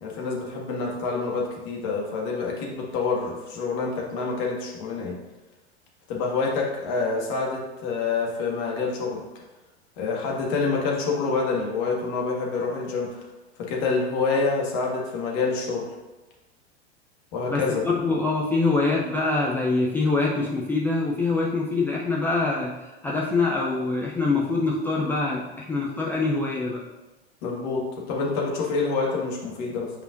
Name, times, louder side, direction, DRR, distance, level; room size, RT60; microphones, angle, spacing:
voice 1, 0.0-5.2 6.1-9.2 10.0-13.2 13.6-15.9 17.3-17.8 27.4-29.9, left 4 dB, 45° left, -2 dB, 1.7 m, -27 dB
voice 2, 17.5-22.7 23.0-26.8, left 3 dB, 5° left, -4 dB, 0.3 m, -24 dB
8.5 x 4.9 x 2.5 m, 1.1 s
figure-of-eight pair, 90°, 34 cm